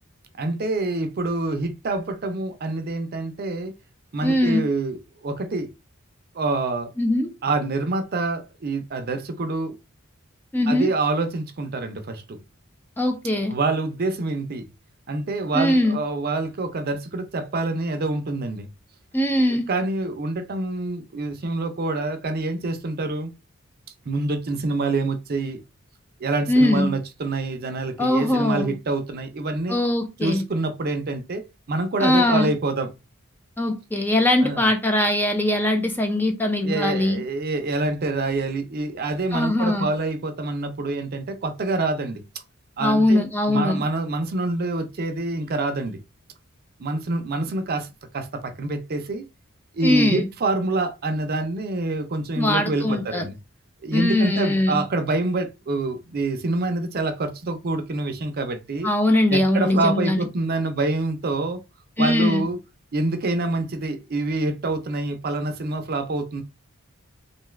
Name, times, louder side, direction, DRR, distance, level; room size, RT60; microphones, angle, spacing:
voice 1, 0.4-3.7 4.1-5.0 5.2-5.7 6.3-6.9 7.4-9.8 10.7-12.4 13.5-14.7 15.1-18.7 19.5-23.3 24.1-25.6 26.2-29.8 30.2-31.4 31.7-32.9 34.4-34.7 36.6-42.2 42.8-43.2 43.5-46.0 46.8-47.9 48.1-49.2 49.7-53.4 53.8-58.9 59.3-61.6 62.0-62.6 62.9-66.4, right 2 dB, 45° right, 0.5 m, -26 dB
voice 2, 4.2-4.7 7.0-7.3 10.5-10.9 13.0-13.5 15.5-16.0 19.1-19.7 26.5-27.0 28.0-28.7 29.7-30.4 32.0-32.5 33.6-37.2 39.3-39.9 42.8-43.8 49.8-50.3 52.4-53.3 53.9-54.8 58.8-60.2 62.0-62.4, left 1 dB, 10° left, 0.3 m, -21 dB
2.6 x 2.3 x 3.1 m
head